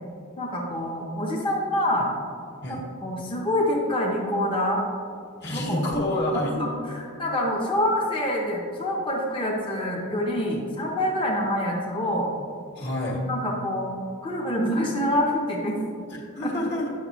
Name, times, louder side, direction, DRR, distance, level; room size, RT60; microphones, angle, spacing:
voice 1, 0.4-2.1 2.7-4.8 5.5-5.8 6.4-12.3 13.3-13.9 14.2-15.8 16.4-16.5, left 1 dB, 25° left, -3 dB, 0.8 m, -26 dB
voice 2, 5.4-6.5 12.7-13.2 16.1-16.9, left 1 dB, 50° left, -2 dB, 1.5 m, -28 dB
9.6 x 6.7 x 3.0 m, 2.4 s
head